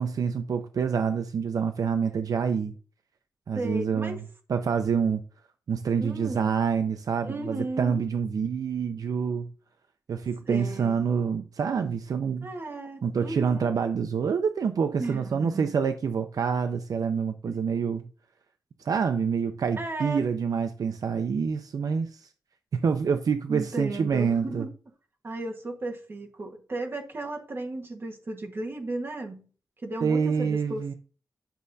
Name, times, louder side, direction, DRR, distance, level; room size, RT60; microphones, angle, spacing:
voice 1, 0.0-2.7 3.5-4.2 4.5-5.2 5.7-9.5 10.1-12.5 13.0-18.1 18.8-22.3 22.7-24.7 30.0-30.9, right 6 dB, 70° right, 0.5 m, -27 dB
voice 2, 3.5-4.2 6.0-6.5 7.2-8.0 10.5-11.1 12.4-13.7 15.0-15.7 17.5-17.6 19.8-20.2 23.5-24.7 25.2-29.5 29.8-30.9, right 2 dB, 35° right, 1.4 m, -35 dB
10.0 x 6.3 x 2.7 m
wide cardioid pair, 155°, 7 cm